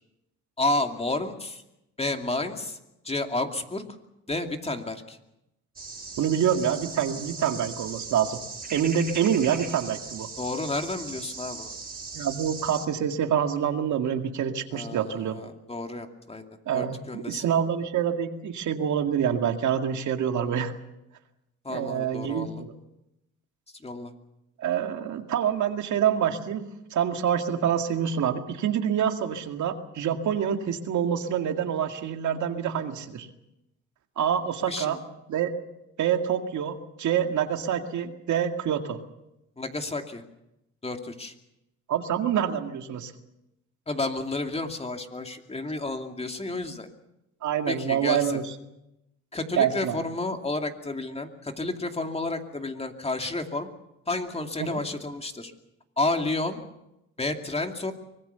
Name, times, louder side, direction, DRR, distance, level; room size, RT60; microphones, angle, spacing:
voice 1, 0.6-1.6 2.0-2.8 3.0-3.8 4.3-5.2 10.4-11.7 14.7-16.5 16.7-17.4 21.6-22.6 23.8-24.1 34.7-35.0 39.6-40.2 40.8-41.3 43.9-46.9 47.7-48.4 49.3-53.7 54.1-55.5 56.0-56.6 57.2-57.9, left 2 dB, 20° left, 5 dB, 2.5 m, -31 dB
sound 1, 5.8-12.9, right 4 dB, 30° right, 4.8 m, -39 dB
voice 2, 6.2-8.4 8.7-10.3 12.1-15.4 16.7-20.7 21.7-22.7 24.6-26.6 26.9-33.3 34.2-35.0 35.3-35.5 36.0-39.0 41.9-43.1 47.4-48.4 49.6-50.0 54.6-54.8, right 8 dB, 75° right, 6 dB, 2.1 m, -26 dB
24.5 x 20.0 x 6.9 m, 0.89 s
cardioid pair, 90°, 30 cm